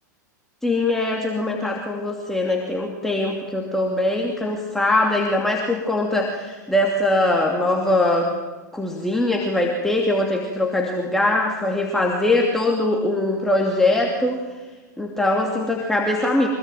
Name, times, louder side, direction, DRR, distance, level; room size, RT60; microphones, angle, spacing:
voice 1, 0.6-8.3 8.7-14.4 15.0-16.5, left 2 dB, 5° left, 0 dB, 2.7 m, -22 dB
25.0 x 20.0 x 9.3 m, 1.3 s
hypercardioid pair, 120°, 10 cm